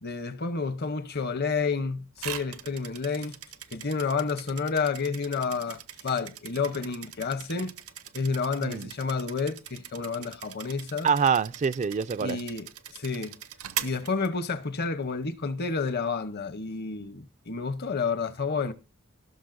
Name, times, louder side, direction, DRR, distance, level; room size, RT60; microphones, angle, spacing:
voice 1, 0.0-3.4 3.7-7.7 8.1-11.1 12.2-13.4 13.8-18.7, left 4 dB, 50° left, 0.8 m, -30 dB
sound 1, 2.2-14.8, right 11 dB, 75° right, 0.7 m, -41 dB
voice 2, 8.6-8.9 11.0-12.4, right 6 dB, 35° right, 0.3 m, -25 dB
16.0 x 6.3 x 2.5 m
head